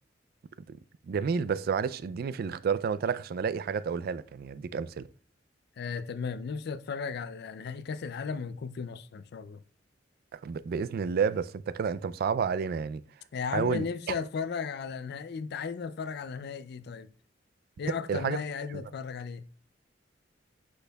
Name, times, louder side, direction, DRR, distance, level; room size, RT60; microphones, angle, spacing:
voice 1, 1.1-5.1 10.3-13.0 13.5-14.1 18.1-18.4 18.7-18.8, right 6 dB, 55° right, 0.3 m, -30 dB
voice 2, 5.8-9.6 13.3-17.1 17.8-19.5, left 5 dB, 60° left, 0.4 m, -35 dB
8.0 x 6.3 x 2.2 m
head